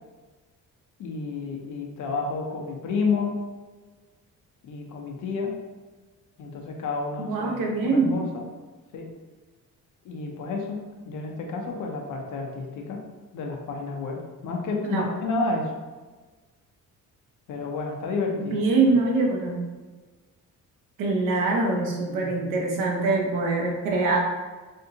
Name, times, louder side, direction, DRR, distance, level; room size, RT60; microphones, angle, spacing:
voice 1, 1.0-3.4 4.6-5.6 6.4-8.4 8.9-9.1 10.0-13.0 13.3-15.7 17.5-18.9 22.1-22.6, left 4 dB, 70° left, 1 dB, 0.7 m, -31 dB
voice 2, 7.2-8.2 14.8-15.1 18.3-19.7 21.0-24.2, right 3 dB, 80° right, -1 dB, 0.8 m, -24 dB
3.5 x 2.5 x 2.8 m, 1.3 s
cardioid pair, 120°, 31 cm